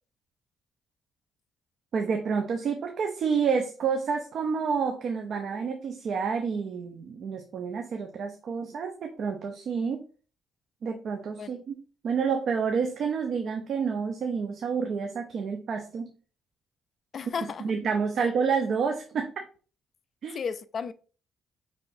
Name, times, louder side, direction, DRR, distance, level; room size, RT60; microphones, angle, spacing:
voice 1, 1.9-10.0 10.8-11.8 12.0-16.1 17.6-19.3 20.2-20.4, right 6 dB, 60° right, 0.6 m, -29 dB
voice 2, 17.1-17.7 18.2-18.3 20.3-20.9, left 6 dB, 50° left, 0.4 m, -34 dB
5.6 x 3.3 x 2.6 m
cardioid pair, 90°, 0 cm